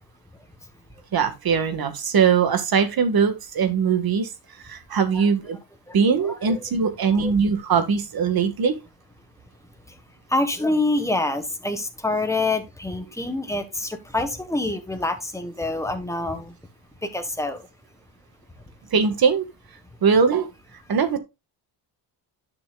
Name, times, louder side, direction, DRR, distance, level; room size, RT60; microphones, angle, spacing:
voice 1, 1.1-4.3 4.6-5.6 5.9-8.7 18.9-19.4 20.0-20.5 20.9-21.2, right 6 dB, 45° right, 1.7 m, -21 dB
voice 2, 10.3-16.5 17.1-17.6, left 2 dB, 5° left, 1.4 m, -26 dB
11.0 x 6.1 x 2.4 m
cardioid pair, 120°, 49 cm